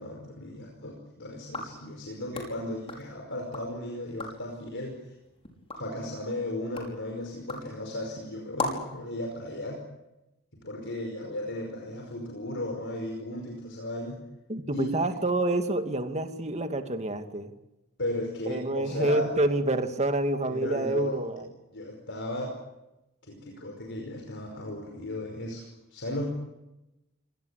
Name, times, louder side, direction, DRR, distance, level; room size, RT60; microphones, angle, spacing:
voice 1, 0.0-5.0 5.8-9.8 10.6-14.2 14.7-15.0 18.0-19.3 20.4-21.2 21.7-22.5 23.2-26.3, left 1 dB, 60° left, 1 dB, 5.2 m, -35 dB
sound 1, 1.4-3.7 4.0-4.5 5.0-9.0, left 2 dB, 25° left, 5.5 m, -39 dB
voice 2, 14.5-17.5 18.5-21.5, right 2 dB, 30° right, 7 dB, 2.4 m, -28 dB
26.5 x 19.5 x 8.3 m, 0.94 s
head